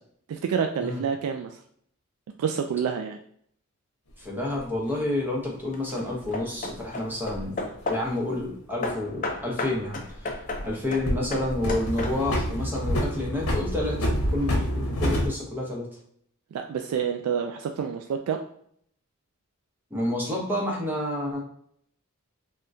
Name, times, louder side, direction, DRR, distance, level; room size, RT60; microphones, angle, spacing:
voice 1, 0.3-1.6 2.4-3.2 16.5-18.4, right 7 dB, 85° right, 7 dB, 0.3 m, -28 dB
voice 2, 4.2-10.4 10.6-14.0 14.3-15.9 19.9-21.4, left 1 dB, 10° right, -2 dB, 0.7 m, -29 dB
sound 1, 4.6-4.7 6.2-7.5 9.7-10.7 11.1-15.3, equal, 80° left, 0.8 m, -28 dB
Hammer / Wood, 4.6-5.1 5.7-8.2 8.8-12.5, left 2 dB, 35° left, 0.5 m, -34 dB
3.5 x 2.2 x 2.6 m, 0.64 s
head